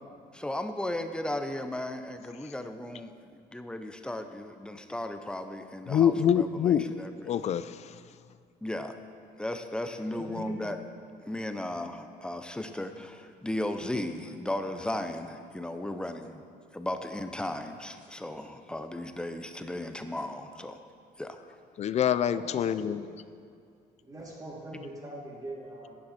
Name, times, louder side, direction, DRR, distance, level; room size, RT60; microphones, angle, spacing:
voice 1, 0.3-7.3 8.6-9.0 9.4-10.8 11.2-16.4 16.7-20.8 21.2-21.4, left 1 dB, 5° left, 8 dB, 0.6 m, -36 dB
voice 2, 5.9-6.9 7.3-7.9 21.8-23.0, left 9 dB, 40° left, 14 dB, 0.4 m, -25 dB
voice 3, 10.1-10.5 22.3-22.8 24.0-26.0, right 1 dB, 20° right, -5 dB, 2.9 m, -41 dB
11.5 x 9.5 x 4.2 m, 2.3 s
cardioid pair, 110°, 17 cm